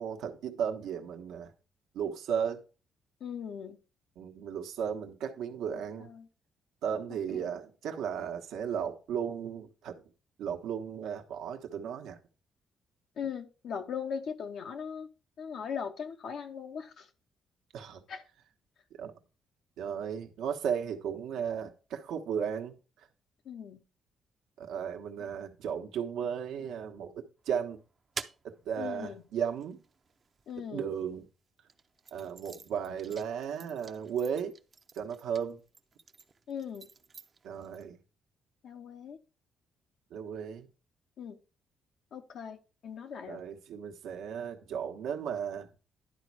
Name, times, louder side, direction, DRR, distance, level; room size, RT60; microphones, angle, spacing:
voice 1, 0.0-1.5 1.9-2.6 4.2-6.1 6.8-10.0 10.4-12.2 17.7-18.0 19.0-19.1 19.8-22.8 24.6-27.8 28.4-29.8 30.7-31.2 32.1-34.5 34.9-35.6 37.4-38.0 40.1-40.7 43.3-45.7, right 8 dB, 85° right, 1.1 m, -35 dB
voice 2, 3.2-3.8 6.0-6.3 7.3-7.5 13.2-15.1 15.4-17.1 18.1-18.2 23.4-23.8 28.8-29.2 30.5-30.9 36.5-36.9 38.6-39.2 41.2-41.4 42.1-43.4, left 7 dB, 70° left, 0.8 m, -39 dB
sound 1, 27.4-31.0 31.6-37.9, right 5 dB, 40° right, 0.6 m, -49 dB
11.0 x 4.2 x 4.7 m
cardioid pair, 90°, 0 cm